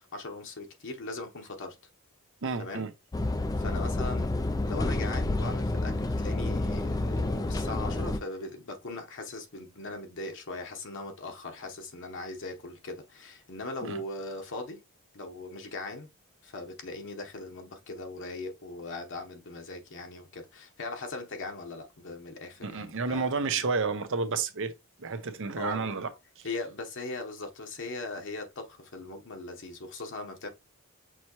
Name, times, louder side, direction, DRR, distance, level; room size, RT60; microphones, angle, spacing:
voice 1, 0.0-1.8 2.6-2.9 3.6-4.3 4.6-14.8 15.1-16.1 16.4-23.5 25.6-26.0 26.4-30.5, left 3 dB, 60° left, 1.0 m, -39 dB
voice 2, 2.4-2.9 13.8-14.0 22.6-24.7 25.0-26.1 26.4-26.5, right 4 dB, 60° right, 0.8 m, -31 dB
sound 1, 3.1-8.2, left 2 dB, 15° left, 0.3 m, -29 dB
6.1 x 2.8 x 3.0 m
head